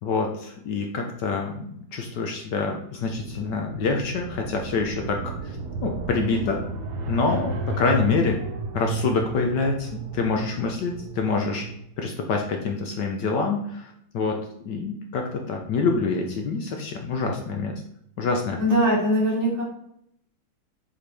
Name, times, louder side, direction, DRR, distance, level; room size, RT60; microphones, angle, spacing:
voice 1, 0.0-5.6 5.8-6.6 7.1-8.4 8.7-11.6 12.0-14.4 14.6-17.8 18.2-18.6, left 4 dB, 65° left, 3 dB, 1.3 m, -26 dB
sound 1, 3.0-11.8, right 2 dB, 80° right, 1.7 m, -33 dB
voice 2, 18.6-19.6, equal, 35° right, -6 dB, 2.7 m, -21 dB
7.7 x 4.3 x 3.4 m, 0.72 s
omnidirectional pair, 2.1 m